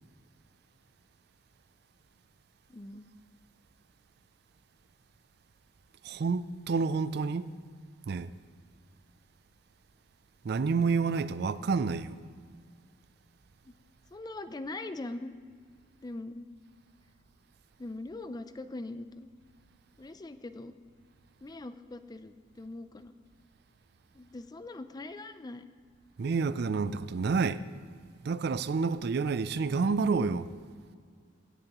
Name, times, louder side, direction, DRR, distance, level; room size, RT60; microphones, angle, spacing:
voice 1, 2.7-3.1 13.6-13.7 14.1-15.3 16.0-16.5 17.8-19.3 20.0-20.7 21.4-23.1 24.1-25.7, left 2 dB, 20° left, 0.4 m, -41 dB
voice 2, 6.0-7.5 8.1-8.3 10.4-12.2 26.2-27.6 28.2-30.5, right 4 dB, 55° right, 0.4 m, -29 dB
17.0 x 10.0 x 3.0 m
head